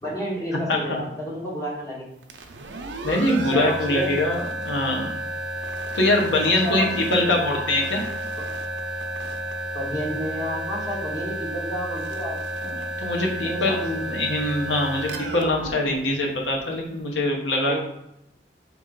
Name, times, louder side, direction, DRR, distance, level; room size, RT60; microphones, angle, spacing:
voice 1, 0.0-2.1 3.5-4.2 6.6-6.9 9.7-12.4 13.4-14.0 17.6-17.8, equal, 20° left, -5 dB, 1.2 m, -30 dB
sound 1, 2.2-16.8, right 1 dB, 85° right, 0.6 m, -32 dB
voice 2, 3.0-5.1 5.9-8.0 12.6-17.8, left 1 dB, 90° left, 0 dB, 1.0 m, -23 dB
4.3 x 3.0 x 3.8 m, 0.82 s
head